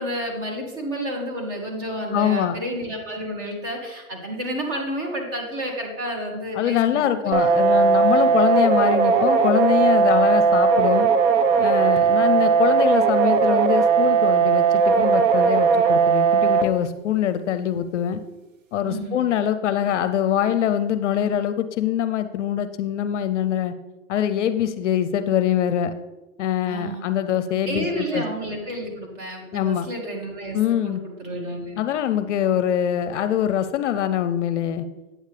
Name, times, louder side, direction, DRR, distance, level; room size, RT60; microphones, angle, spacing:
voice 1, 0.0-7.4 8.1-8.4 18.9-19.3 26.7-27.0 27.7-31.8, right 1 dB, 30° right, 0 dB, 2.1 m, -31 dB
voice 2, 2.1-2.5 6.5-11.1 11.6-18.2 18.7-23.7 24.1-25.9 26.4-28.2 29.5-29.9 30.5-31.0 31.8-34.8, left 10 dB, 55° left, 11 dB, 0.6 m, -23 dB
sound 1, 7.3-16.6, right 5 dB, 60° right, 1.0 m, -18 dB
8.8 x 8.2 x 3.3 m, 1.1 s
hypercardioid pair, 140°, 43 cm